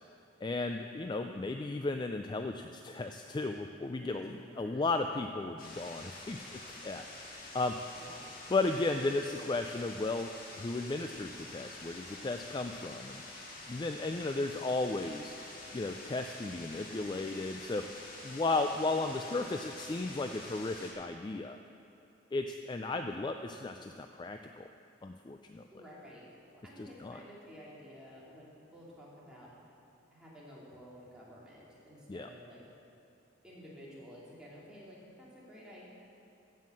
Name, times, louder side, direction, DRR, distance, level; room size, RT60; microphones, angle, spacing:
voice 1, 0.4-7.0 7.5-7.7 8.5-10.3 10.6-13.2 13.7-15.3 15.7-17.8 18.2-21.6 22.3-24.7 25.0-25.6 26.8-27.2 32.1-32.3, left 3 dB, 25° left, 6 dB, 0.3 m, -35 dB
voice 2, 4.0-4.9 7.9-8.2 18.4-19.4 25.7-29.6 30.1-32.6 33.4-36.0, equal, 5° right, -7 dB, 2.5 m, -52 dB
sound 1, 5.6-20.9, left 2 dB, 50° left, 2.0 m, -47 dB
14.5 x 5.7 x 7.6 m, 2.6 s
head